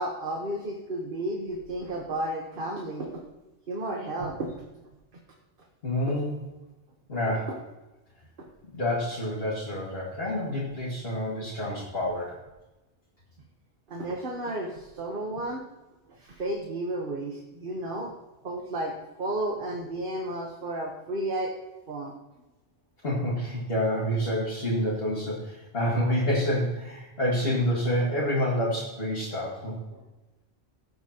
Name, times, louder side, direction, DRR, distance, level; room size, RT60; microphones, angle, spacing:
voice 1, 0.0-3.2 3.7-4.6 8.4-8.5 13.9-15.7 16.1-18.1 18.4-18.9 19.2-21.5 21.9-22.1 29.9-30.0, right 1 dB, 50° right, 0 dB, 1.3 m, -32 dB
voice 2, 5.8-6.3 7.1-7.5 8.7-12.4 23.0-29.8, equal, 60° left, -7 dB, 2.3 m, -28 dB
16.0 x 8.1 x 2.9 m, 1.0 s
omnidirectional pair, 1.2 m